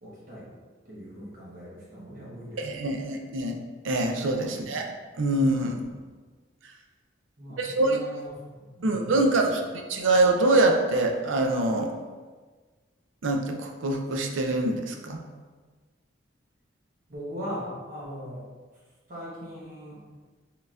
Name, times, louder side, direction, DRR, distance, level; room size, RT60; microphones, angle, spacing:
voice 1, 0.0-0.5 0.9-3.2 4.5-4.9 5.6-6.1 7.4-9.3 17.1-18.5 19.1-20.0, equal, 45° right, -8 dB, 1.0 m, -40 dB
voice 2, 2.6-3.5 3.8-4.9 5.2-5.8 7.6-8.0 8.8-9.6 9.9-11.9 13.2-15.2, right 2 dB, 80° right, 3 dB, 0.5 m, -24 dB
4.1 x 3.8 x 2.4 m, 1.4 s
head